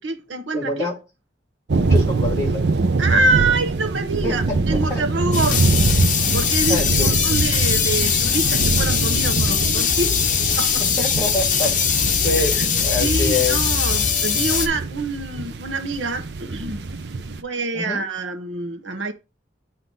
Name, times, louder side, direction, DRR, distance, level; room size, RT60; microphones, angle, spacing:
voice 1, 0.0-0.9 3.0-5.8 6.3-10.2 10.6-10.8 12.4-12.7 13.0-16.9 17.4-19.1, right 3 dB, 85° right, 1.0 m, -25 dB
voice 2, 0.5-1.0 1.8-2.6 4.2-5.0 6.7-7.2 10.8-13.6 17.7-18.1, left 2 dB, 20° left, 2.2 m, -26 dB
sound 1, 1.7-17.4, right 3 dB, 65° right, 0.6 m, -24 dB
sound 2, 5.3-14.7, left 7 dB, 45° left, 0.7 m, -21 dB
7.9 x 2.9 x 5.4 m
head